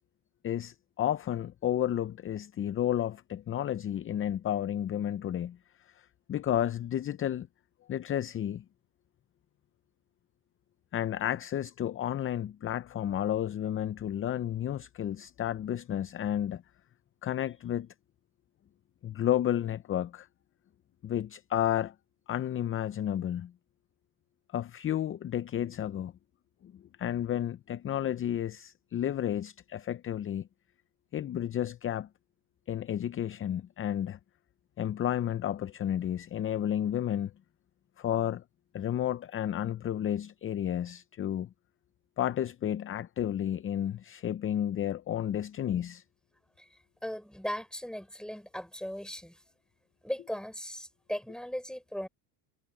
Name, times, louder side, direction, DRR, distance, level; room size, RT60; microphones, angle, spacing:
voice 1, 0.4-5.6 6.0-7.5 7.9-8.6 10.9-16.6 17.2-17.9 19.0-20.3 21.0-21.9 22.3-23.5 24.5-26.1 26.6-26.7 27.0-30.5 31.1-32.1 32.7-34.2 34.8-37.3 38.0-38.4 38.7-41.5 42.2-46.0, left 11 dB, 30° left, 0.6 m, -31 dB
voice 2, 46.6-49.4 50.0-52.1, equal, ahead, 6.0 m, -38 dB
supercardioid pair, 105°, 46 cm